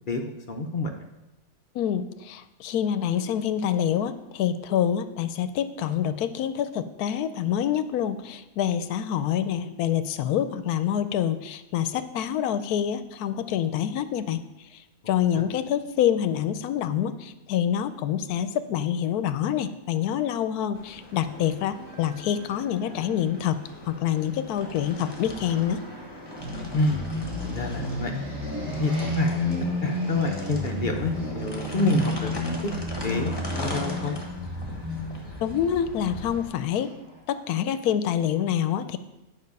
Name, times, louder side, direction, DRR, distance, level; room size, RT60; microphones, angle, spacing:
voice 1, 0.5-1.0 15.3-15.5 26.7-27.1 27.4-28.1 28.7-29.5 29.8-32.7 33.0-34.1, left 2 dB, 50° left, 3 dB, 0.6 m, -28 dB
voice 2, 1.7-14.4 15.1-23.6 23.9-25.8 35.4-36.9 37.3-39.0, left 9 dB, 80° left, 12 dB, 1.1 m, -26 dB
sound 1, 20.7-36.5, left 1 dB, 15° left, 1.2 m, -39 dB
sound 2, 26.4-37.1, left 1 dB, 55° right, 4.4 m, -31 dB
9.5 x 5.5 x 5.3 m, 0.99 s
omnidirectional pair, 1.6 m